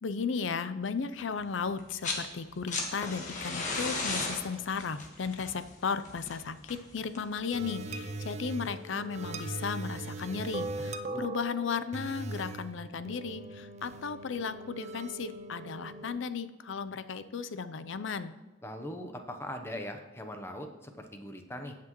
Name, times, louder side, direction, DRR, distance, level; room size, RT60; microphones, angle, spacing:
voice 1, 0.0-18.3, left 5 dB, 70° left, 13 dB, 0.5 m, -35 dB
sound 1, 1.8-2.3 2.5-7.4 8.6-8.7, left 3 dB, 40° left, 1.4 m, -36 dB
sound 2, 7.5-16.2, right 2 dB, 35° right, 0.4 m, -40 dB
voice 2, 18.6-21.7, left 1 dB, 15° left, 5 dB, 0.8 m, -41 dB
17.5 x 6.0 x 3.0 m, 1.2 s
head